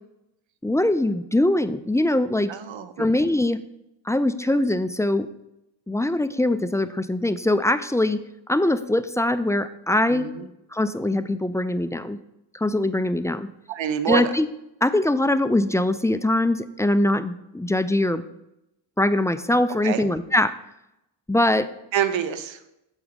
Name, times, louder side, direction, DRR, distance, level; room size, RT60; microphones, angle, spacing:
voice 1, 0.6-2.5 3.0-3.6 4.1-5.3 5.9-8.2 8.5-10.3 10.7-12.2 12.5-13.5 14.1-14.5 14.8-18.2 19.0-20.5 21.3-21.7, left 1 dB, 5° left, 12 dB, 0.3 m, -22 dB
voice 2, 2.5-3.2 10.1-10.5 13.7-14.3 19.8-20.0 21.9-22.6, right 9 dB, 70° right, 12 dB, 0.8 m, -26 dB
7.2 x 4.7 x 5.1 m, 0.88 s
supercardioid pair, 45°, 47 cm